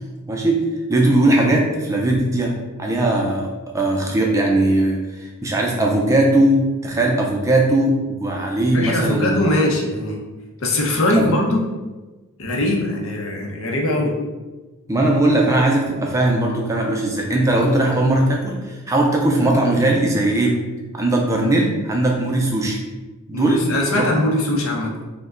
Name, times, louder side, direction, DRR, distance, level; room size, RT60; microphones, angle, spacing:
voice 1, 0.3-0.6 0.9-9.4 11.2-11.3 14.9-20.6 20.9-22.8 23.3-23.6 23.9-24.1, right 1 dB, 15° right, 0 dB, 0.4 m, -19 dB
voice 2, 8.7-10.2 10.6-11.6 12.4-14.1 23.3-24.9, left 1 dB, 65° left, -1 dB, 0.8 m, -21 dB
4.9 x 2.2 x 3.7 m, 1.2 s
head